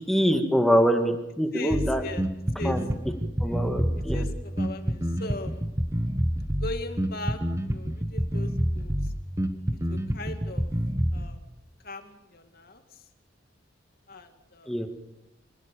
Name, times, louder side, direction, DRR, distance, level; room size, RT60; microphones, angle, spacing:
voice 1, 0.1-2.0 2.6-2.9 3.4-4.2 14.7-14.9, equal, ahead, 5 dB, 2.1 m, -24 dB
voice 2, 1.5-2.2 2.6-2.8 4.1-5.7 6.6-9.1 9.9-10.7 11.1-11.4 11.8-12.8 14.1-14.7, left 2 dB, 55° left, 7 dB, 2.4 m, -39 dB
Bass guitar, 1.7-11.3, equal, 15° right, 1.5 m, -28 dB
26.5 x 19.5 x 7.0 m, 0.93 s
head